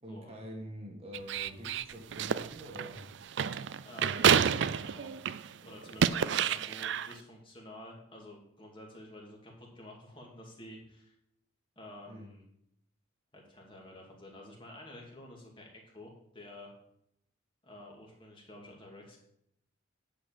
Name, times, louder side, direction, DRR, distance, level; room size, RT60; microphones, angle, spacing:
voice 1, 0.0-3.0 5.6-6.0 12.1-12.3, equal, 30° right, 0 dB, 1.5 m, -46 dB
sound 1, 1.1-5.5 5.8-7.1, right 7 dB, 60° right, 0.4 m, -29 dB
voice 2, 3.8-4.4 4.6-5.2 5.6-11.1 11.8-12.4 13.3-15.7 15.9-16.7 17.6-19.2, left 1 dB, 25° left, -1 dB, 2.4 m, -50 dB
10.0 x 5.1 x 7.6 m, 0.76 s
head